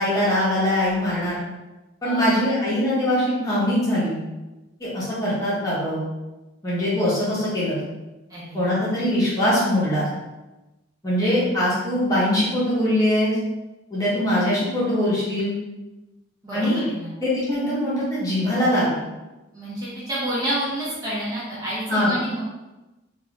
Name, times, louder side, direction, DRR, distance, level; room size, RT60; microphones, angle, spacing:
voice 1, 0.0-1.4 2.0-4.2 4.8-6.0 6.6-7.8 8.5-10.1 11.0-13.4 13.9-15.5 16.5-16.8 17.2-19.0 21.9-22.1, left 1 dB, 20° left, -9 dB, 1.0 m, -22 dB
voice 2, 8.3-8.8 16.4-17.1 19.5-22.4, right 1 dB, 20° right, -9 dB, 1.0 m, -29 dB
4.3 x 2.7 x 2.3 m, 1.1 s
head